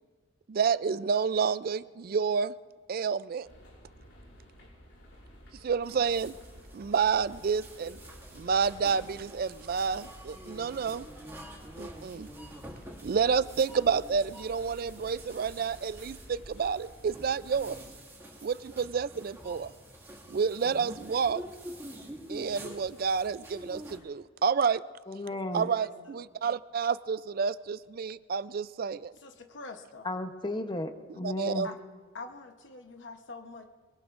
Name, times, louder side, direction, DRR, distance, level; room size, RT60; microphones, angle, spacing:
voice 1, 0.5-2.5 2.9-3.5 5.6-6.4 6.7-8.0 8.3-11.1 11.8-12.3 13.0-17.8 18.4-19.7 20.3-21.4 22.3-24.8 25.5-29.1 31.2-31.7, right 6 dB, 50° right, 17 dB, 0.4 m, -29 dB
sound 1, 3.4-17.8, equal, 80° left, 5.4 m, -52 dB
sound 2, 5.8-24.0, right 1 dB, 15° right, 2.0 m, -47 dB
voice 2, 25.1-25.7 30.0-31.7, left 2 dB, 25° left, 7 dB, 0.8 m, -34 dB
voice 3, 25.7-26.2 29.2-30.1 31.6-31.8 32.1-33.7, left 3 dB, 65° left, 5 dB, 0.9 m, -45 dB
23.5 x 23.0 x 2.5 m, 1.5 s
head